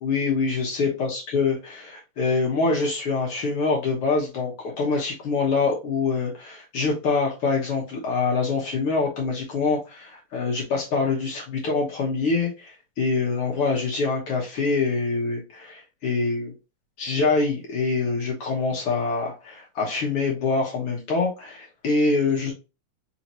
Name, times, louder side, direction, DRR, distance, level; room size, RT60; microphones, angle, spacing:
voice 1, 0.0-16.5 17.0-22.5, left 4 dB, 65° left, -2 dB, 1.5 m, -25 dB
5.0 x 2.8 x 2.9 m, 0.28 s
omnidirectional pair, 3.7 m